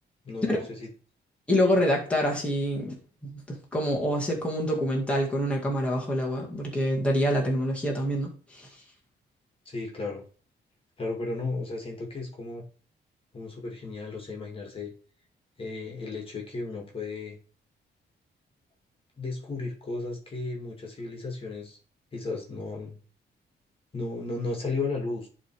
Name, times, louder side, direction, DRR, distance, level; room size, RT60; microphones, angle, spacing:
voice 1, 0.2-0.9 9.7-10.2 11.0-12.6 13.3-14.9 15.6-17.4 19.2-21.8 22.1-23.0 23.9-25.3, left 3 dB, 30° left, 1 dB, 2.1 m, -34 dB
voice 2, 1.5-3.0 3.2-8.8, equal, 5° left, -2 dB, 2.0 m, -26 dB
11.0 x 3.7 x 4.7 m, 0.39 s
wide cardioid pair, 145°, 18 cm